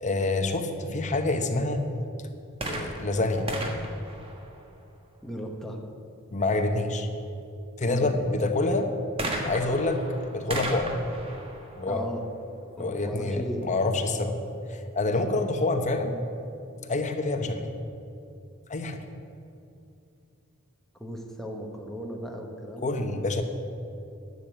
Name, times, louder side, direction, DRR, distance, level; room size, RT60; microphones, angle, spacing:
voice 1, 0.0-1.8 2.7-3.5 6.3-7.1 7.8-8.9 9.4-11.0 11.8-12.0 12.8-14.4 14.7-16.1 16.9-17.7 18.7-19.0 22.8-23.4, left 2 dB, 35° left, 6 dB, 0.9 m, -27 dB
sound 1, 2.5-5.1 9.2-12.8 13.6-13.7, right 1 dB, 25° right, 1.3 m, -36 dB
voice 2, 5.2-5.8 7.8-8.2 11.9-12.2 12.8-13.6 21.0-23.0, equal, ahead, 1 dB, 1.2 m, -36 dB
11.0 x 6.8 x 8.5 m, 2.6 s
head